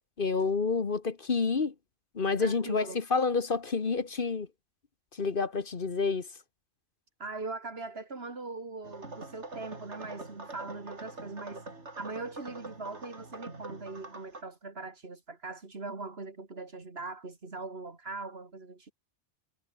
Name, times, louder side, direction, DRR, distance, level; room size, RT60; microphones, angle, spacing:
voice 1, 0.2-1.7 2.1-4.5 5.1-6.3, left 4 dB, 50° left, 1.5 m, -29 dB
voice 2, 2.4-3.0 7.2-11.6 12.0-18.9, right 3 dB, 60° right, 2.9 m, -41 dB
sound 1, 8.8-14.4, right 2 dB, 75° right, 4.0 m, -45 dB
omnidirectional pair, 1.2 m